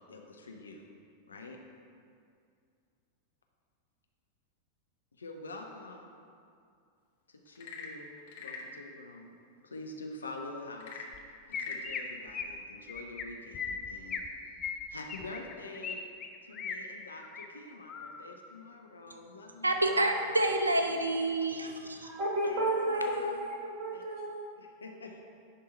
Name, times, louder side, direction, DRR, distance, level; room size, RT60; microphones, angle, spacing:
voice 1, 0.1-0.9 1.3-1.6 5.2-6.1 7.3-8.1 8.4-9.3 9.6-11.0 11.5-14.2 14.5-14.6 14.9-16.0 16.4-20.2 22.4-23.5 23.9-24.0 24.6-25.2, left 2 dB, 75° left, 2 dB, 0.7 m, -46 dB
Frog / Percussion / Wood, 7.5-8.8 10.7-11.9, left 5 dB, 55° left, 0.9 m, -43 dB
Chirp tweet, 11.1-11.2 11.5-12.0 12.3-12.5 12.9-13.2 13.5-14.3 14.6-15.9 16.2-16.8 17.2-17.5 17.9-18.2, left 6 dB, 25° left, 0.6 m, -38 dB
voice 2, 19.6-22.1, right 1 dB, 80° right, 5 dB, 0.6 m, -28 dB
voice 3, 22.1-24.5, right 1 dB, 40° right, -2 dB, 1.1 m, -32 dB
10.5 x 3.7 x 4.3 m, 2.3 s
figure-of-eight pair, 90°, 0 cm